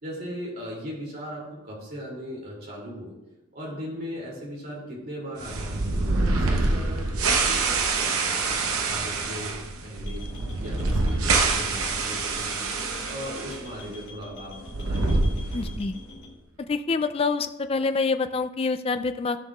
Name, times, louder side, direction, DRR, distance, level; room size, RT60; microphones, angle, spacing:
voice 1, 0.0-3.2 3.5-12.7 13.0-15.4, equal, 45° right, -4 dB, 2.7 m, -38 dB
sound 1, 5.4-13.6 13.9-14.0 14.6-16.0, right 3 dB, 85° right, 0.8 m, -26 dB
sound 2, 10.0-16.3, left 1 dB, 60° left, 2.5 m, -44 dB
voice 2, 15.5-15.9 16.7-19.4, left 4 dB, 25° left, 10 dB, 0.3 m, -26 dB
14.5 x 5.6 x 2.4 m, 0.99 s
head